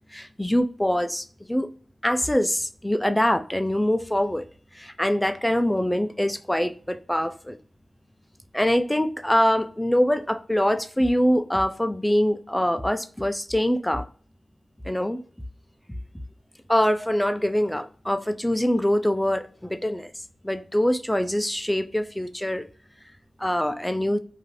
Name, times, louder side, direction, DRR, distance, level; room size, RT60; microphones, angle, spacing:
voice 1, 0.1-1.7 2.0-4.4 4.7-7.6 8.5-14.1 14.8-15.2 16.7-20.1 20.4-22.6 23.4-24.2, equal, 5° left, 0.3 m, -24 dB
2.5 x 2.4 x 3.1 m
wide cardioid pair, 80°, 0 cm